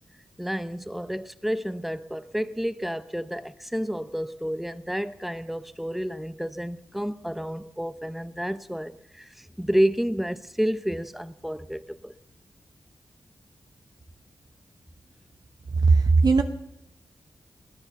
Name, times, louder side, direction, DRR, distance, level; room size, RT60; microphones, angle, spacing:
voice 1, 0.4-12.1, equal, ahead, 0.8 m, -30 dB
voice 2, 15.8-16.4, right 4 dB, 60° right, 1.0 m, -17 dB
20.5 x 10.0 x 6.9 m
cardioid pair, 75°, 8 cm